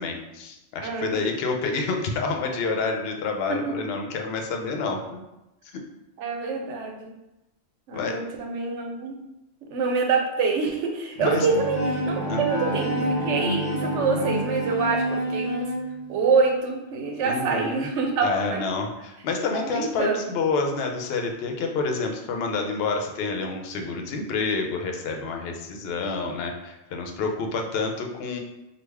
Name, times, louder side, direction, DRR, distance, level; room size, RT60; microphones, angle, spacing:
voice 1, 0.0-5.2 7.9-8.2 11.2-11.5 12.3-12.4 17.2-17.9 18.2-28.4, left 4 dB, 65° left, 3 dB, 0.7 m, -28 dB
voice 2, 0.8-1.2 3.5-3.8 6.2-7.1 7.9-9.2 9.7-15.7 16.1-18.6 19.6-20.3, right 4 dB, 85° right, 2 dB, 0.9 m, -26 dB
Bowed string instrument, 11.2-16.1, right 1 dB, 40° right, 0.9 m, -27 dB
3.2 x 2.3 x 3.4 m, 0.95 s
omnidirectional pair, 1.2 m